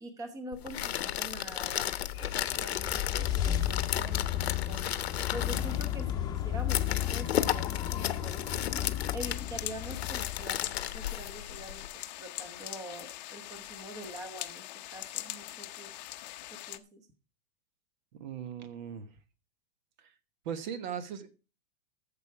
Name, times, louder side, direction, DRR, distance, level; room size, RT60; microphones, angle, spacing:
voice 1, 0.0-4.8 5.2-8.7 9.1-11.9 12.2-14.6 14.9-15.9 16.5-17.0, right 1 dB, 10° right, 8 dB, 1.1 m, -45 dB
sound 1, 0.5-11.9, left 11 dB, 85° left, 1.1 m, -34 dB
sound 2, 1.9-11.0, left 11 dB, 10° left, 1.1 m, -34 dB
sound 3, 9.2-16.8, left 16 dB, 45° left, 0.8 m, -42 dB
voice 2, 18.1-19.1 20.0-20.1 20.4-21.3, right 8 dB, 45° right, 13 dB, 1.3 m, -39 dB
13.5 x 7.2 x 4.7 m, 0.33 s
supercardioid pair, 165°, 31 cm